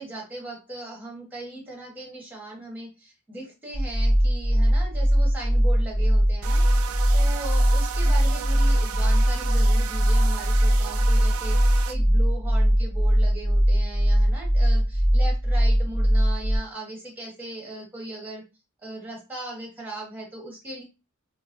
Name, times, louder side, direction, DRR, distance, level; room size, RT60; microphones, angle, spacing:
voice 1, 0.0-6.6 7.1-18.4 18.8-20.8, right 2 dB, 10° right, -2 dB, 1.1 m, -38 dB
sound 1, 3.7-16.6, equal, 45° left, 1.6 m, -20 dB
sound 2, 6.4-11.9, right 9 dB, 70° right, 0.3 m, -35 dB
3.8 x 2.1 x 2.6 m, 0.28 s
head